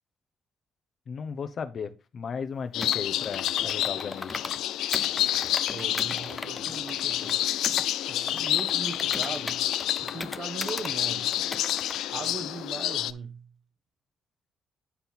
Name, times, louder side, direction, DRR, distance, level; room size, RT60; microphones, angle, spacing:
voice 1, 1.1-4.4, left 6 dB, 50° left, 1.0 m, -35 dB
sound 1, 2.7-13.1, left 12 dB, 90° left, 0.3 m, -29 dB
Computer keyboard, 2.8-4.6 4.9-7.9 8.3-10.9 11.3-12.0, left 3 dB, 20° left, 0.5 m, -38 dB
voice 2, 5.7-7.4 8.1-9.7 10.0-11.4 12.1-13.5, right 4 dB, 50° right, 1.1 m, -39 dB
9.8 x 4.0 x 4.3 m
cardioid pair, 90°, 0 cm